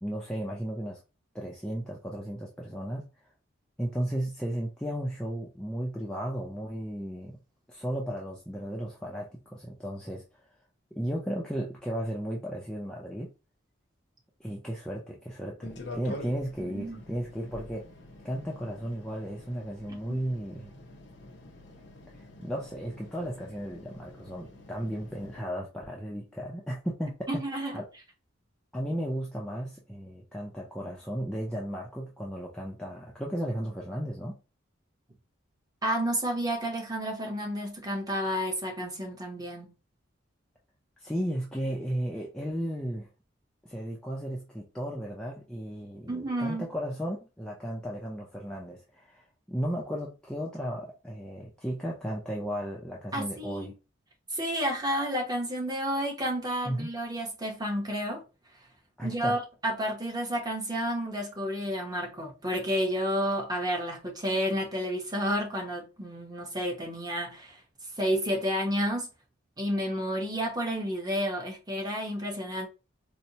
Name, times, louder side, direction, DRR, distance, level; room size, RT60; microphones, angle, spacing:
voice 1, 0.0-1.0 1.3-3.1 3.8-7.3 7.7-10.2 10.9-13.3 14.4-17.8 18.2-20.7 22.1-27.4 27.7-27.9 28.7-34.4 41.0-43.1 43.6-53.7 56.6-56.9 59.0-59.4, equal, 5° left, 0.4 m, -34 dB
sound 1, 15.6-25.4, left 1 dB, 60° left, 0.7 m, -47 dB
voice 2, 16.6-17.0 19.9-20.0 27.3-27.8 35.8-39.7 46.1-46.6 53.1-53.7 54.3-58.2 59.0-67.6 68.0-69.1 69.6-72.7, equal, 20° right, 0.8 m, -31 dB
4.2 x 2.0 x 2.7 m
head